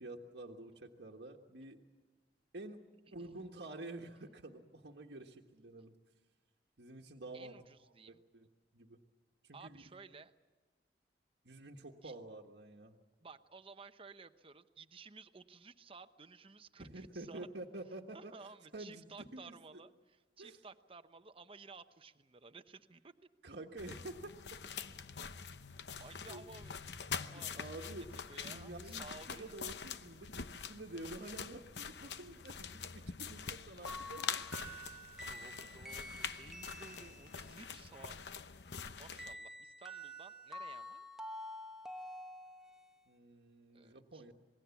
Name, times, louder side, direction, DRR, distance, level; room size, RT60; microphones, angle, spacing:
voice 1, 0.0-1.8 2.5-2.8 3.1-5.9 6.8-7.6 8.1-8.5 8.7-9.0 9.4-9.9 11.4-12.9 16.8-18.3 18.7-19.8 20.4-20.6 23.4-24.4 26.0-26.4 27.5-34.4 43.1-44.3, right 2 dB, 70° right, 2 dB, 1.5 m, -49 dB
voice 2, 7.3-8.2 9.5-10.3 12.0-12.1 13.2-17.5 18.1-23.1 25.9-26.8 27.1-27.9 28.2-29.6 35.2-38.2 38.9-41.1 43.7-44.3, right 4 dB, 30° right, 10 dB, 0.9 m, -55 dB
sound 1, 23.8-39.3, left 6 dB, 75° left, 0.8 m, -45 dB
sound 2, 33.9-37.6 39.2-43.0, equal, 5° right, 1.0 m, -48 dB
27.0 x 20.0 x 7.2 m, 1.3 s
head